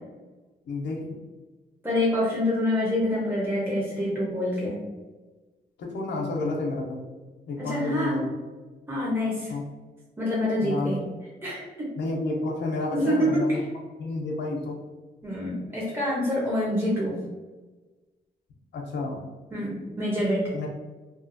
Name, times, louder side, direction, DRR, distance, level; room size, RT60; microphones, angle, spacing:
voice 1, 0.7-1.0 5.8-7.0 7.5-8.3 9.5-9.6 10.6-10.9 12.0-13.6 14.0-14.8 18.7-19.2 20.5-20.7, left 2 dB, 80° left, -1 dB, 0.6 m, -30 dB
voice 2, 1.8-4.8 7.6-8.2 8.9-9.5 10.2-11.0 11.4-11.9 12.9-13.7 15.2-17.2 19.5-20.4, left 1 dB, 10° right, -6 dB, 0.8 m, -26 dB
2.6 x 2.4 x 2.5 m, 1.3 s
cardioid pair, 70°, 18 cm